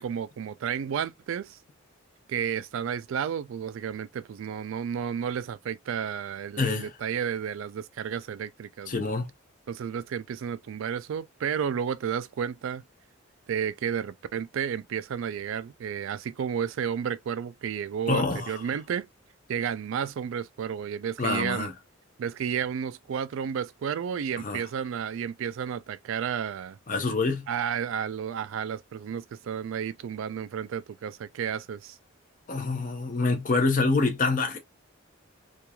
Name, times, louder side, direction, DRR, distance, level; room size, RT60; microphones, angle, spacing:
voice 1, 0.0-1.6 2.3-9.1 9.7-12.8 13.5-19.1 19.5-21.7 22.2-26.8 27.5-32.0, right 8 dB, 70° right, 0.3 m, -32 dB
voice 2, 6.6-6.9 8.9-9.3 18.1-18.6 21.2-21.7 24.4-24.6 26.9-27.5 32.5-34.6, left 3 dB, 40° left, 0.6 m, -26 dB
3.0 x 2.4 x 2.2 m
head